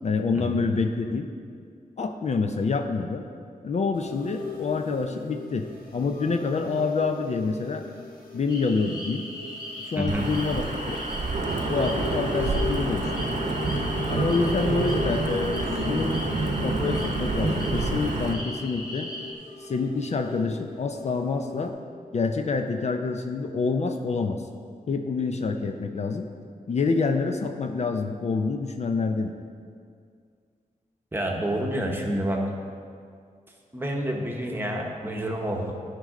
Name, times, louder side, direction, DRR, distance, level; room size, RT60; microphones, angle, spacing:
voice 1, 0.0-1.3 2.0-3.2 3.6-5.7 5.9-7.8 8.3-9.2 9.8-11.0 11.7-13.3 14.1-16.2 16.6-19.1 19.6-21.7 22.1-24.4 24.9-26.3 26.7-29.3, left 4 dB, 50° left, 5 dB, 0.5 m, -27 dB
sound 1, 3.9-21.7, left 3 dB, 80° left, 1.5 m, -38 dB
sound 2, 8.5-19.3, left 1 dB, 25° left, 1.1 m, -38 dB
voice 2, 10.0-10.3 31.1-32.4 33.7-35.8, right 1 dB, 15° right, 0 dB, 1.0 m, -28 dB
Wind / Thunder / Rain, 10.1-18.3, right 3 dB, 55° right, 0.8 m, -28 dB
12.5 x 5.3 x 3.7 m, 2.2 s
wide cardioid pair, 135°, 15 cm